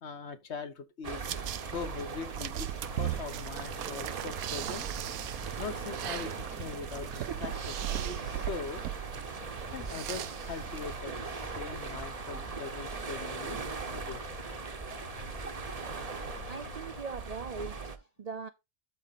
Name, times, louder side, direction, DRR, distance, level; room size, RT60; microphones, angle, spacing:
voice 1, 0.0-5.1 5.6-8.8 9.7-13.6 13.9-14.2, left 5 dB, 55° left, 1.2 m, -41 dB
sound 1, 1.0-18.0, right 4 dB, 30° right, 0.8 m, -40 dB
sound 2, 1.2-11.0, right 12 dB, 80° right, 1.1 m, -38 dB
sound 3, 2.9-17.0, left 6 dB, 75° left, 1.6 m, -50 dB
voice 2, 16.5-18.5, right 4 dB, 55° right, 0.4 m, -41 dB
12.5 x 4.3 x 4.1 m
omnidirectional pair, 1.5 m